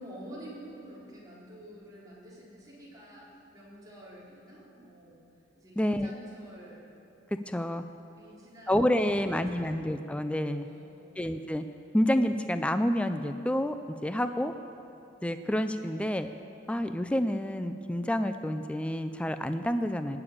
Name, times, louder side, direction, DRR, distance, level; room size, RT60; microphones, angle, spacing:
voice 1, 0.0-3.3 3.5-5.3 5.5-6.8 8.1-9.8 10.6-11.3, right 1 dB, 20° right, -7 dB, 4.1 m, -48 dB
voice 2, 5.8-6.1 7.5-7.8 8.7-10.7 11.2-11.6 11.9-13.8 14.0-14.5 15.2-16.3 16.7-20.2, equal, 5° left, 9 dB, 0.4 m, -28 dB
20.0 x 6.9 x 8.6 m, 2.7 s
head